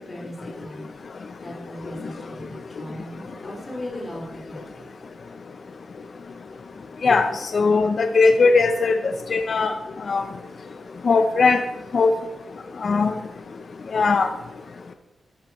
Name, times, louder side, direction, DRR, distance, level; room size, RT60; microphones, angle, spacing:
voice 1, 0.1-0.9 1.4-4.9, equal, 20° left, -4 dB, 4.3 m, -37 dB
voice 2, 7.0-9.0 9.3-9.7 10.1-10.2 11.0-11.6 11.9-12.1 12.8-13.1 13.9-14.3, left 4 dB, 50° left, 7 dB, 0.6 m, -19 dB
12.5 x 11.5 x 3.1 m, 1.0 s
wide cardioid pair, 140°, 0 cm